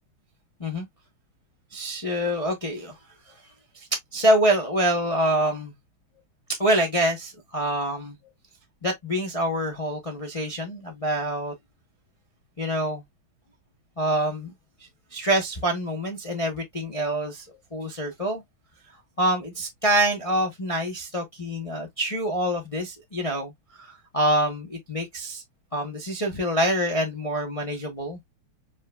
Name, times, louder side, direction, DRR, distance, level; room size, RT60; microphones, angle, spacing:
voice 1, 1.7-3.0 3.3-3.4 4.1-5.7 6.6-8.2 8.8-11.5 12.6-13.0 14.0-14.5 15.1-17.5 17.7-18.4 19.2-23.5 23.8-25.4 25.7-28.2, right 1 dB, 25° left, 0.8 m, -26 dB
5.1 x 3.9 x 2.3 m
omnidirectional pair, 2.2 m